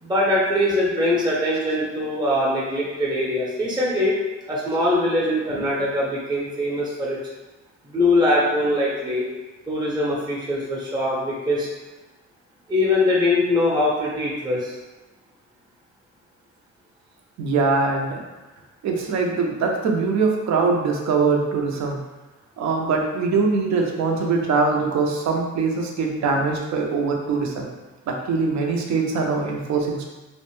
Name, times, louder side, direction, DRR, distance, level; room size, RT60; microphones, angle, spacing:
voice 1, 0.0-4.1 4.5-7.2 7.8-9.2 9.7-11.7 12.7-14.7, left 1 dB, 15° right, -5 dB, 0.7 m, -22 dB
voice 2, 17.4-18.2 18.8-22.0 22.6-27.7 28.1-30.0, right 4 dB, 65° right, 1 dB, 0.6 m, -22 dB
2.5 x 2.1 x 3.0 m, 1.1 s
cardioid pair, 90°, 30 cm